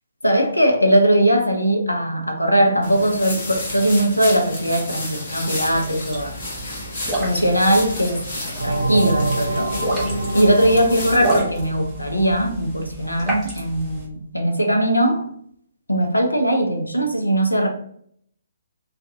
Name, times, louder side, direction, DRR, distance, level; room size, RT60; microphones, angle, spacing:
voice 1, 0.2-6.3 7.2-8.2 8.6-9.8 10.3-15.2 15.9-17.7, right 1 dB, 85° left, 3 dB, 0.5 m, -19 dB
sound 1, 2.8-11.4, left 1 dB, 45° left, 1.0 m, -32 dB
sound 2, 5.6-14.1, right 2 dB, 10° right, 0.8 m, -31 dB
sound 3, 8.6-13.0, right 2 dB, 80° right, 0.4 m, -26 dB
2.4 x 2.3 x 2.6 m, 0.65 s
figure-of-eight pair, 130°, 0 cm